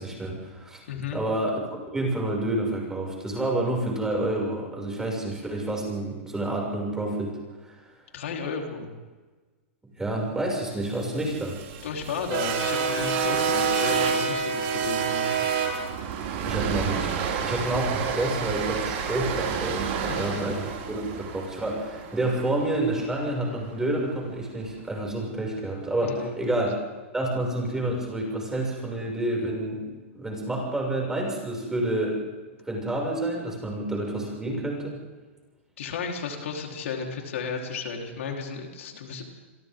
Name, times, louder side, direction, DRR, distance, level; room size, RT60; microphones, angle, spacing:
voice 1, 0.0-0.8 1.1-1.6 1.9-7.7 10.0-11.6 16.4-17.1 17.4-26.8 27.1-29.9 30.1-32.2 32.7-35.0, right 1 dB, 10° right, -1 dB, 6.8 m, -29 dB
voice 2, 0.9-1.2 8.1-8.9 11.8-15.4 20.1-20.4 26.0-26.6 35.8-39.2, left 5 dB, 80° left, 1 dB, 4.2 m, -33 dB
sound 1, 11.0-23.2, right 6 dB, 55° right, 5.8 m, -28 dB
29.5 x 23.0 x 3.9 m, 1.3 s
supercardioid pair, 145°, 7 cm